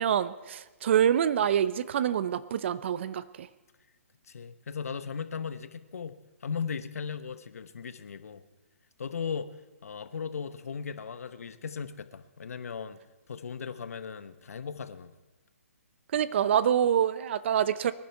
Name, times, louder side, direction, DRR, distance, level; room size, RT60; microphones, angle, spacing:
voice 1, 0.0-3.5 16.1-17.9, right 9 dB, 50° right, 16 dB, 0.6 m, -26 dB
voice 2, 4.3-8.4 9.0-9.5 9.8-13.0 13.3-15.1, left 6 dB, 70° left, 11 dB, 1.0 m, -37 dB
23.5 x 10.5 x 4.6 m, 1.1 s
hypercardioid pair, 150°, 8 cm